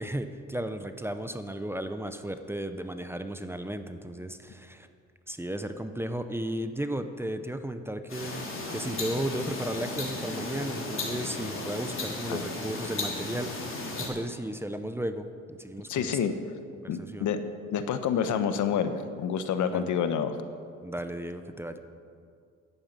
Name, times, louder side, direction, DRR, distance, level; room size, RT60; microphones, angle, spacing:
voice 1, 0.0-4.9 5.3-16.2 17.0-17.3 19.7-19.9 20.8-21.8, right 1 dB, 10° right, 9 dB, 0.7 m, -34 dB
sound 1, 8.1-14.1, left 2 dB, 45° left, 3.4 m, -35 dB
voice 2, 15.9-16.3 16.9-17.4 17.7-20.4, left 7 dB, 75° left, 9 dB, 1.0 m, -28 dB
11.0 x 9.2 x 7.4 m, 2.3 s
cardioid pair, 90°, 30 cm